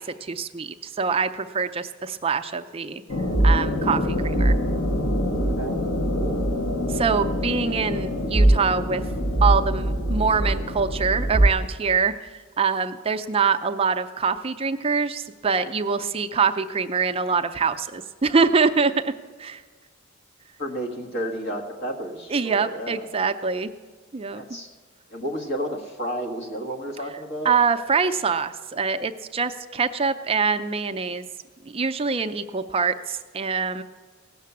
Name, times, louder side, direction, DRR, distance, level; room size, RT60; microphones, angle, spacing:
voice 1, 0.0-3.0 3.4-4.6 6.9-9.0 9.4-19.1 19.4-19.6 22.3-23.7 24.1-24.4 27.4-31.2 31.7-33.8, right 5 dB, 30° right, 8 dB, 0.4 m, -24 dB
sound 1, 3.1-11.5, right 1 dB, 90° left, 1.7 m, -23 dB
voice 2, 6.1-6.4 20.6-23.1 24.3-24.7 25.1-27.5, equal, 60° left, 1 dB, 1.8 m, -32 dB
17.0 x 6.6 x 8.3 m, 1.5 s
head